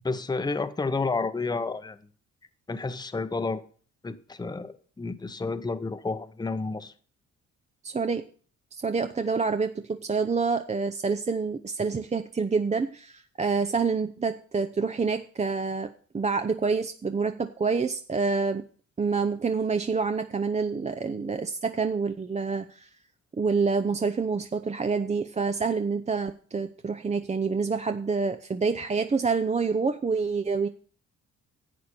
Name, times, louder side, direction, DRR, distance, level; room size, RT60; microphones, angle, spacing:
voice 1, 0.0-2.0 2.7-3.6 4.0-6.9, left 3 dB, 15° left, 0.8 m, -30 dB
voice 2, 7.8-8.2 8.7-18.6 19.0-22.9 23.4-30.7, right 4 dB, 25° right, 0.6 m, -27 dB
11.0 x 8.3 x 4.4 m
cardioid pair, 90°, 30 cm